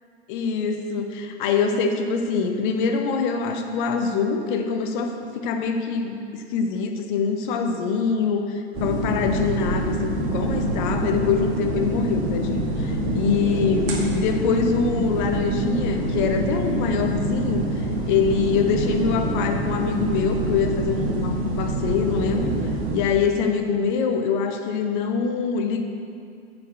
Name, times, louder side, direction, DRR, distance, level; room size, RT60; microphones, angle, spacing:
voice 1, 0.3-6.2 6.5-22.5 22.9-25.8, left 5 dB, 45° left, 5 dB, 1.1 m, -24 dB
sound 1, 8.7-23.0, right 1 dB, 40° right, 2.2 m, -25 dB
7.5 x 7.0 x 6.7 m, 2.4 s
hypercardioid pair, 115°, 34 cm